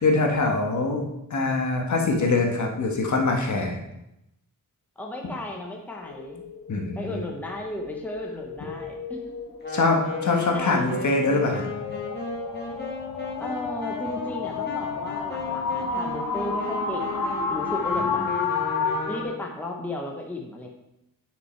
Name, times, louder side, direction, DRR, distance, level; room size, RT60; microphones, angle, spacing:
voice 1, 0.0-3.8 6.7-7.2 9.7-11.7 18.0-18.1, left 3 dB, 55° left, 2 dB, 1.6 m, -24 dB
voice 2, 5.0-6.4 6.9-9.3 10.5-10.8 13.4-18.3 19.1-20.7, left 1 dB, 5° left, 0 dB, 1.0 m, -35 dB
sound 1, 6.0-19.2, left 4 dB, 75° left, 1.2 m, -31 dB
Wind instrument woodwind instrument, 9.6-19.5, left 4 dB, 30° left, 1.9 m, -36 dB
9.4 x 6.0 x 4.6 m, 0.85 s
wide cardioid pair, 175°, 34 cm